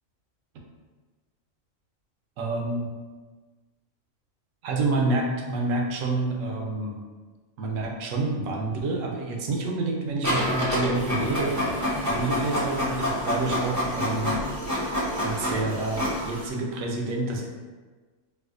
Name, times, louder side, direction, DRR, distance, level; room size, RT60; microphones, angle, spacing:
voice 1, 2.4-2.9 4.6-7.0 7.6-11.6 12.0-14.4 14.7-14.9 15.2-17.5, right 2 dB, 80° right, 0 dB, 1.0 m, -28 dB
Printer, 10.2-16.5, equal, 20° right, 0.5 m, -27 dB
4.7 x 2.1 x 2.4 m, 1.3 s
omnidirectional pair, 1.4 m